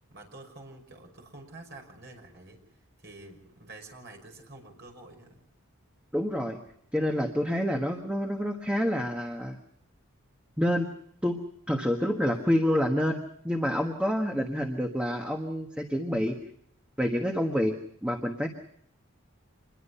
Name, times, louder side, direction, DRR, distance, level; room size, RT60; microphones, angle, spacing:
voice 1, 0.1-5.4 7.5-7.7 12.3-12.4, right 2 dB, 50° right, 2 dB, 5.7 m, -48 dB
voice 2, 6.1-6.6 6.9-9.6 10.6-10.9 11.2-11.4 11.7-16.4 17.0-18.5, equal, 5° right, 3 dB, 1.3 m, -28 dB
26.5 x 21.5 x 5.7 m, 0.69 s
head